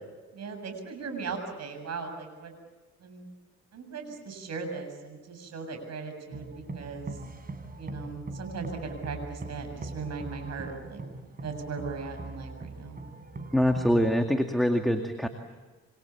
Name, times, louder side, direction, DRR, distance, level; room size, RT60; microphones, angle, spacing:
voice 1, 0.3-2.5 3.0-3.3 3.7-6.5 6.7-7.2 7.8-11.0 11.4-13.0, right 4 dB, 60° right, 6 dB, 7.5 m, -38 dB
sound 1, 6.3-14.1, right 2 dB, 30° right, 4.1 m, -41 dB
voice 2, 13.5-15.3, equal, ahead, 4 dB, 2.2 m, -24 dB
27.5 x 26.0 x 7.3 m, 1.3 s
cardioid pair, 90°, 30 cm